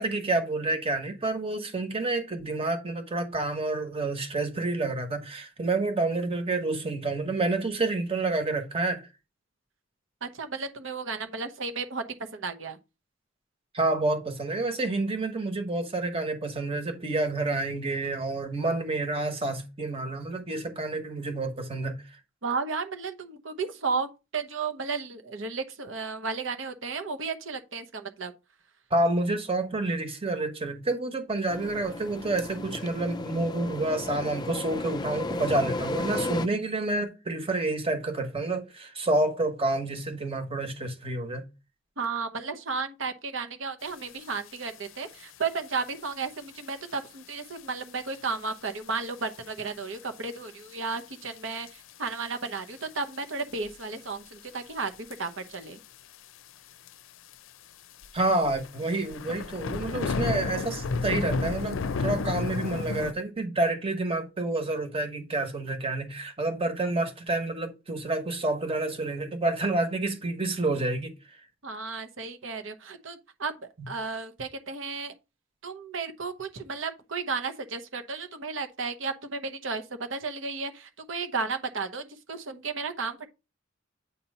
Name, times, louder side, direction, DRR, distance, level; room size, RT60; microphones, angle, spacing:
voice 1, 0.0-9.0 13.7-22.2 28.9-41.5 58.1-71.1 73.8-73.9, right 2 dB, 30° right, 1.2 m, -29 dB
voice 2, 10.2-12.0 12.3-12.8 22.4-28.3 42.0-55.8 71.6-75.1 75.6-83.3, right 4 dB, 75° right, 1.0 m, -33 dB
sound 1, 31.5-36.5, left 2 dB, 20° left, 0.4 m, -34 dB
sound 2, 44.5-44.6 44.8-45.2 45.9-46.1 46.7-46.8 47.4-47.5 47.8-47.9 48.1-48.2 49.3-49.6 50.0-50.1 51.0-51.1 51.7-52.1 52.5-52.6 53.1-53.8 54.9-55.2 55.5-55.6 55.8-55.9 56.1-56.2 56.9-57.0 57.3-57.4 58.0-63.1, left 4 dB, 80° left, 0.5 m, -31 dB
8.3 x 2.9 x 5.4 m
head